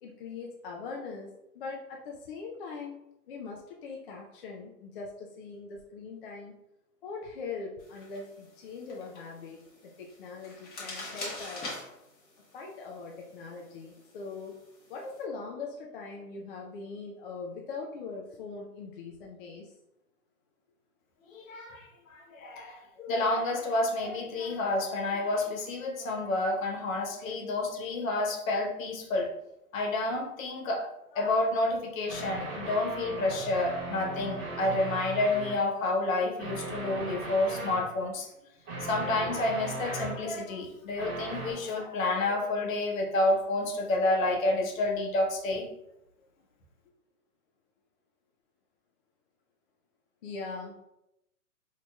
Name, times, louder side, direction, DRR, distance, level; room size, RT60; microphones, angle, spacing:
voice 1, 0.0-3.0 3.3-6.6 7.0-9.6 9.8-11.7 12.5-14.6 14.9-19.7 50.2-50.8, left 4 dB, 40° left, -1 dB, 0.5 m, -41 dB
sound 1, 7.8-15.2, left 2 dB, 20° left, 1.1 m, -45 dB
voice 2, 21.3-29.3 29.7-38.3 38.8-45.7, left 2 dB, 60° left, 1 dB, 1.0 m, -29 dB
sound 2, 32.1-35.6 36.4-37.9 38.7-40.4 41.0-41.5, right 2 dB, 30° right, 1.3 m, -38 dB
4.6 x 2.8 x 2.2 m, 0.86 s
hypercardioid pair, 120°, 46 cm